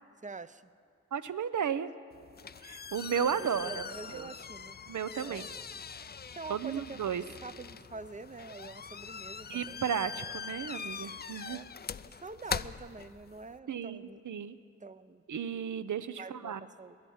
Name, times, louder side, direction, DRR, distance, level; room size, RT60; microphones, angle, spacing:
voice 1, 0.2-0.7 3.3-4.8 5.2-5.5 6.3-7.0 7.3-9.8 11.5-11.7 12.0-14.2 14.8-15.2 16.2-17.0, right 3 dB, 25° right, 14 dB, 0.5 m, -46 dB
voice 2, 1.1-1.9 2.6-3.8 4.1-4.3 4.9-5.5 6.5-7.2 9.5-11.6 13.7-14.6 15.3-16.6, right 8 dB, 85° right, 13 dB, 0.6 m, -34 dB
sound 1, 2.1-13.6, left 6 dB, 35° left, 0.4 m, -42 dB
18.5 x 11.0 x 7.1 m, 2.5 s
cardioid pair, 45°, 29 cm